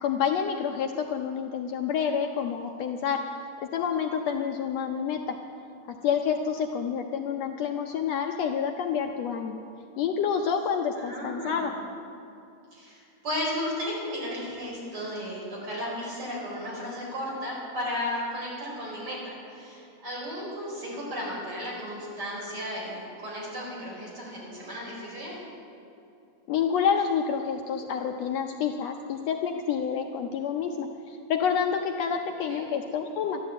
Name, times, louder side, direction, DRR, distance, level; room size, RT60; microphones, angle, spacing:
voice 1, 0.0-3.2 3.6-5.4 5.9-9.6 10.0-11.7 26.5-33.4, left 7 dB, 75° left, 4 dB, 1.7 m, -28 dB
voice 2, 10.9-11.7 12.7-25.5 32.5-32.7, left 1 dB, 45° right, -5 dB, 5.5 m, -34 dB
13.0 x 11.5 x 8.3 m, 2.6 s
omnidirectional pair, 3.4 m